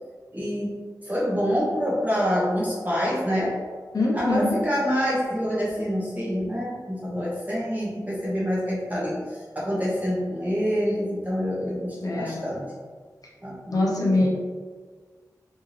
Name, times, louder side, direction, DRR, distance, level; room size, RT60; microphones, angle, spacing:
voice 1, 0.3-0.8 1.1-3.5 4.1-9.2 9.5-12.7 13.4-14.3, equal, 25° right, -6 dB, 1.2 m, -26 dB
voice 2, 3.9-4.6 12.0-12.4 13.7-14.3, left 2 dB, 60° left, -3 dB, 0.7 m, -23 dB
3.4 x 2.7 x 3.2 m, 1.5 s
wide cardioid pair, 65°, 7 cm